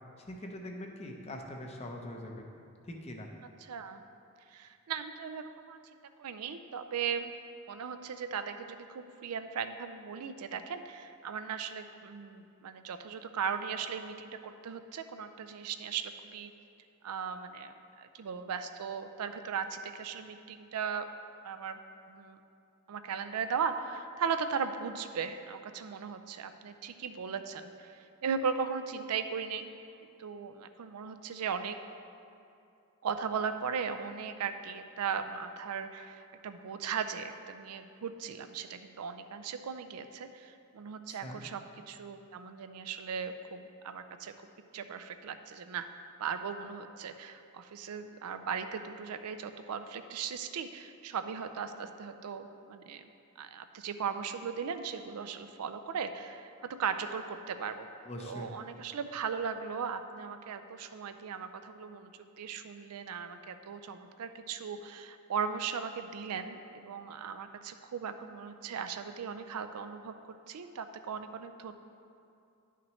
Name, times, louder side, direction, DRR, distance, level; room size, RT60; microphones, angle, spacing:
voice 1, 0.2-2.4 2.8-3.3 41.1-41.4 58.0-58.5, left 1 dB, 30° left, 2 dB, 0.6 m, -42 dB
voice 2, 3.6-4.0 4.5-7.3 7.7-16.5 17.0-21.1 21.4-21.8 22.1-22.4 22.9-29.7 30.2-31.8 33.0-41.6 41.9-44.3 44.7-45.9 46.2-53.1 53.4-57.9 58.2-70.1 70.5-71.7, right 6 dB, 90° right, 9 dB, 0.4 m, -37 dB
10.5 x 5.8 x 3.1 m, 2.6 s
head